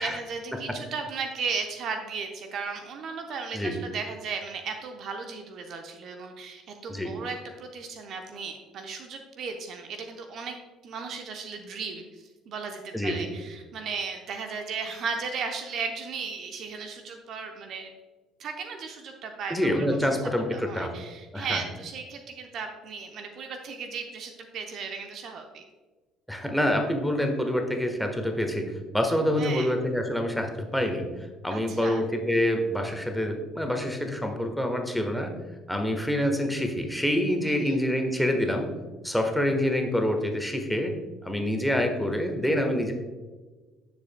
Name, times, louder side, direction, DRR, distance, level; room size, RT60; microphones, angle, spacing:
voice 1, 0.0-10.6 10.8-17.9 18.4-20.0 20.5-25.6 29.4-29.7 31.5-32.0 37.4-37.8, right 5 dB, 50° right, 5 dB, 0.7 m, -36 dB
voice 2, 12.9-13.3 19.5-20.9 21.3-21.6 26.3-31.1 31.4-35.3 35.7-38.7 39.0-40.9 41.2-42.9, left 1 dB, ahead, 4 dB, 1.3 m, -26 dB
10.5 x 6.9 x 2.2 m, 1.3 s
figure-of-eight pair, 55°, 0 cm